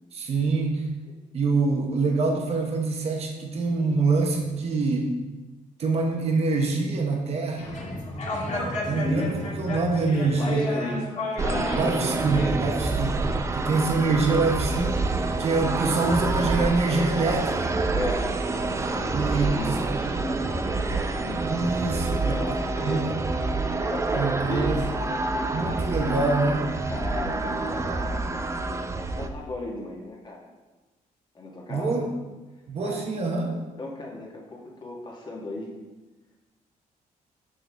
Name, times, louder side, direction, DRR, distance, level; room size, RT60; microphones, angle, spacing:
voice 1, 0.1-0.9 1.3-5.1 5.8-7.7 8.8-10.9 11.7-13.2 13.5-17.7 19.1-19.8 21.4-22.4 22.8-23.1 24.1-24.8 25.5-26.6 31.7-32.1 32.7-33.6, right 3 dB, 45° right, 1 dB, 1.0 m, -25 dB
sound 1, 7.6-12.5, left 1 dB, 55° left, 1.6 m, -31 dB
voice 2, 8.9-9.4 10.3-11.0 11.4-12.0 17.9-18.3 18.9-21.8 22.2-24.9 25.4-25.6 26.9-30.5 31.3-32.1 32.8-33.1 33.8-35.7, left 2 dB, 30° left, -1 dB, 1.4 m, -36 dB
sound 2, 11.4-29.3, right 3 dB, 20° right, 0.4 m, -27 dB
6.7 x 6.3 x 3.4 m, 1.2 s
cardioid pair, 130°, 14 cm